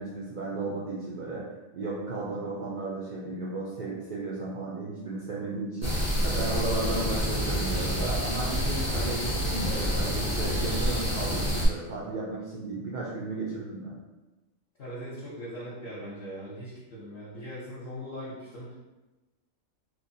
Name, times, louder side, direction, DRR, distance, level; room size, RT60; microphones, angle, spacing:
voice 1, 0.0-13.9, right 2 dB, 85° right, -7 dB, 0.4 m, -34 dB
sound 1, 5.8-11.7, equal, 25° left, 0.4 m, -28 dB
voice 2, 14.8-18.7, equal, 55° left, -9 dB, 0.8 m, -40 dB
3.1 x 2.1 x 2.6 m, 1.1 s
omnidirectional pair, 1.4 m